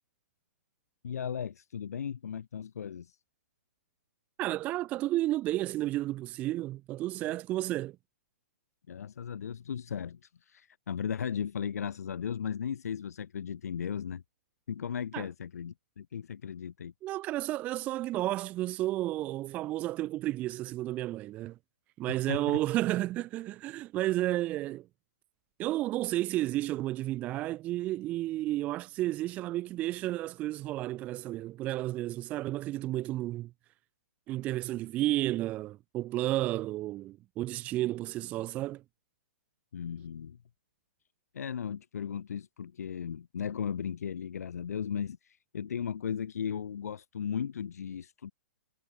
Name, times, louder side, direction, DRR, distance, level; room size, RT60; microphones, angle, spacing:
voice 1, 1.0-3.2 8.9-14.2 14.7-16.9 22.1-22.6 39.7-40.4 41.3-48.3, left 7 dB, 85° left, 1.1 m, -36 dB
voice 2, 4.4-8.0 15.1-15.3 17.0-21.6 22.0-24.9 25.6-33.5 34.3-38.8, right 15 dB, 15° right, 0.5 m, -32 dB
hypercardioid pair, 160°, 8 cm